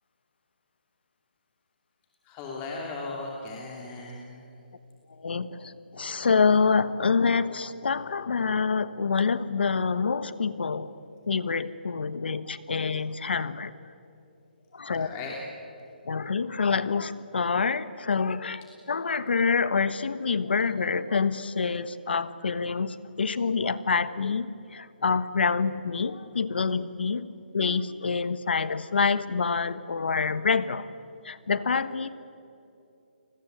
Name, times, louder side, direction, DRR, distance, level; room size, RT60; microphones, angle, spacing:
voice 1, 2.2-4.4 14.8-15.4, left 3 dB, 20° left, -2 dB, 2.9 m, -37 dB
voice 2, 5.2-10.9 11.3-13.7 14.7-15.1 16.1-18.6 18.9-27.3 27.5-30.9 31.2-32.1, left 5 dB, 75° left, 15 dB, 1.3 m, -26 dB
29.5 x 20.5 x 8.1 m, 2.8 s
hypercardioid pair, 160°, 6 cm